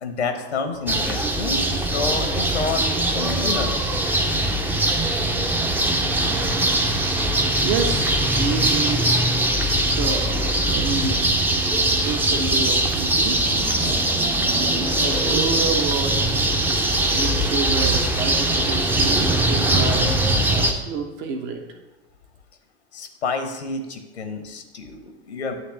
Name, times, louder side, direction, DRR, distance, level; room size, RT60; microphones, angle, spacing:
voice 1, 0.0-3.8 22.9-25.5, left 4 dB, 75° left, 6 dB, 1.1 m, -29 dB
sound 1, 0.9-20.7, right 1 dB, 5° right, 0.6 m, -21 dB
voice 2, 7.6-9.2 9.5-11.2 11.6-13.4 15.0-16.4 17.1-21.6, right 5 dB, 45° right, 3 dB, 1.0 m, -29 dB
sound 2, 13.1-15.7, right 1 dB, 70° right, 1.8 m, -32 dB
9.1 x 3.3 x 6.4 m, 1.1 s
figure-of-eight pair, 85°, 34 cm